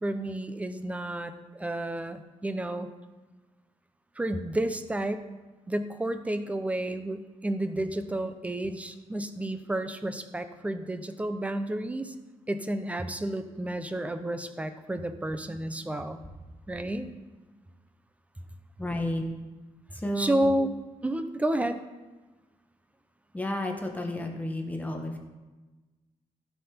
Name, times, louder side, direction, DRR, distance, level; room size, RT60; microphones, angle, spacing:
voice 1, 0.0-2.9 4.2-5.2 5.7-12.1 12.5-16.2 16.7-17.1 20.2-20.7 21.0-21.8, right 1 dB, 10° right, 9 dB, 0.7 m, -31 dB
voice 2, 18.8-19.2 19.9-20.5 23.3-25.2, left 1 dB, 10° left, 2 dB, 1.2 m, -31 dB
15.5 x 5.8 x 4.3 m, 1.2 s
cardioid pair, 135°, 13 cm